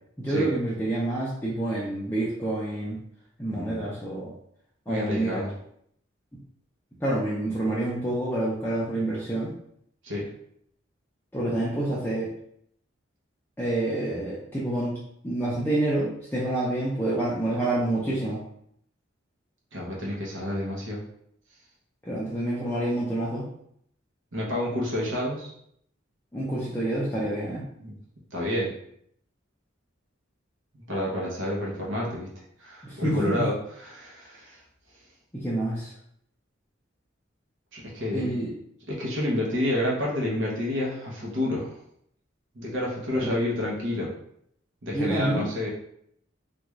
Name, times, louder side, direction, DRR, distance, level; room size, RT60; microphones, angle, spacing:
voice 1, 0.2-3.0 3.4-4.3 4.9-5.4 7.0-9.5 11.3-12.3 13.6-14.9 15.2-18.4 22.0-23.4 26.3-27.6 32.8-33.4 35.3-35.9 38.1-38.5 43.1-43.3 44.9-45.4, right 1 dB, 10° left, -8 dB, 0.5 m, -28 dB
voice 2, 3.5-3.9 4.9-5.5 10.0-10.3 19.7-21.0 24.3-25.5 27.8-28.0 28.3-28.7 30.9-32.3 32.6-34.6 37.7-38.3 38.9-41.8 42.5-44.1 44.8-45.7, left 1 dB, 65° right, -4 dB, 0.8 m, -29 dB
3.4 x 2.5 x 3.1 m, 0.71 s
head